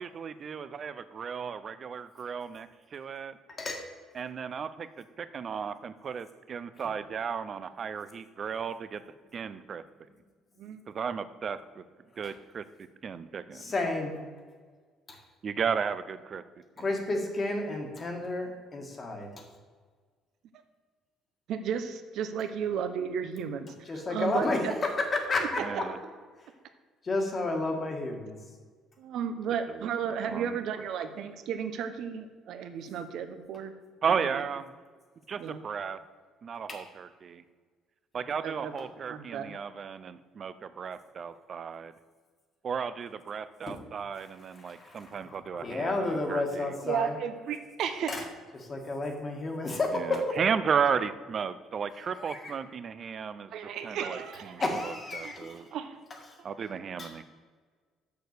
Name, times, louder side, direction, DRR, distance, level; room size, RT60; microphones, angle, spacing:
voice 1, 0.0-3.4 4.1-9.0 9.3-9.8 10.9-11.8 12.2-12.6 13.0-13.7 15.4-16.4 25.6-26.0 29.7-29.9 30.3-30.6 34.0-34.7 35.3-36.0 36.4-37.4 38.1-41.9 42.6-46.8 49.9-53.5 53.8-55.7 56.4-57.2, right 6 dB, 40° right, 13 dB, 0.5 m, -34 dB
voice 2, 3.5-3.8 6.8-6.9 13.5-14.2 15.1-15.2 16.8-19.4 23.8-25.9 27.0-28.4 36.7-36.9 43.7-43.8 44.5-47.2 48.1-48.2 48.5-50.4 52.2-52.5 54.6-55.6 56.1-56.2 57.0-57.1, left 2 dB, 30° left, 3 dB, 1.7 m, -31 dB
voice 3, 21.5-23.7 24.1-24.7 25.6-25.8 29.0-33.7 34.1-34.2 35.4-35.6 38.4-38.7 39.1-39.5 46.8-48.2 53.5-54.6 55.2-55.3 55.7-56.0, right 7 dB, 65° right, 9 dB, 0.9 m, -34 dB
6.8 x 6.4 x 6.7 m, 1.5 s
cardioid pair, 125°, 0 cm